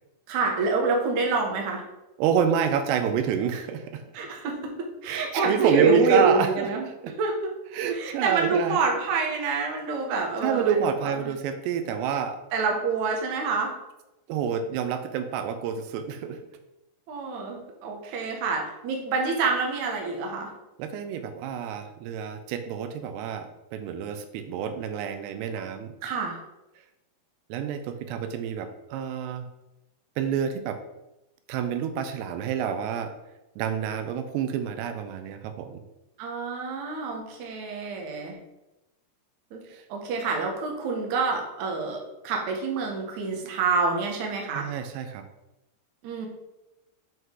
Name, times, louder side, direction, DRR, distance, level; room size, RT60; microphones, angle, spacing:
voice 1, 0.3-1.8 4.1-4.7 5.0-6.9 7.2-7.5 7.9-10.8 11.0-11.1 12.5-13.7 17.1-20.5 26.0-26.4 36.2-38.4 39.5-39.6 39.9-44.7 46.0-46.3, right 4 dB, 60° right, 1 dB, 2.2 m, -27 dB
voice 2, 2.2-4.0 5.0-7.1 7.7-8.8 10.4-12.4 14.3-16.4 18.0-18.2 20.8-25.9 27.5-29.4 30.2-30.8 31.5-33.1 33.6-35.8 39.7-39.9 44.5-45.2, right 7 dB, 90° right, 8 dB, 2.8 m, -28 dB
7.5 x 5.4 x 3.8 m, 0.95 s
omnidirectional pair, 4.7 m